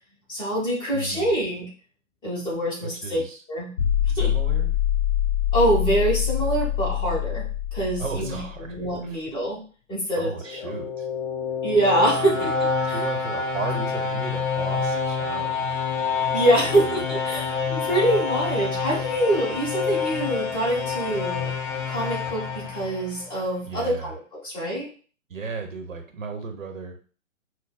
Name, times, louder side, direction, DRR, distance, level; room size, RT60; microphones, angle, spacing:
voice 1, 0.3-1.7 2.2-3.2 3.5-3.7 4.2-4.3 5.5-7.4 7.7-9.6 9.9-10.7 11.6-12.5 12.9-13.0 16.3-21.5 21.9-24.2 24.4-24.9, right 1 dB, 10° left, -6 dB, 1.1 m, -25 dB
voice 2, 0.9-1.3 2.8-3.4 4.1-4.7 8.0-8.8 9.0-9.2 10.2-11.1 12.1-12.6 12.9-15.8 16.6-17.1 23.7-24.1 25.3-27.0, right 4 dB, 70° right, 4 dB, 1.0 m, -35 dB
sound 1, 3.8-8.8, left 11 dB, 30° left, 0.4 m, -25 dB
sound 2, 10.3-23.4, left 5 dB, 55° left, 0.9 m, -28 dB
5.3 x 2.2 x 2.3 m, 0.40 s
figure-of-eight pair, 130°, 40 cm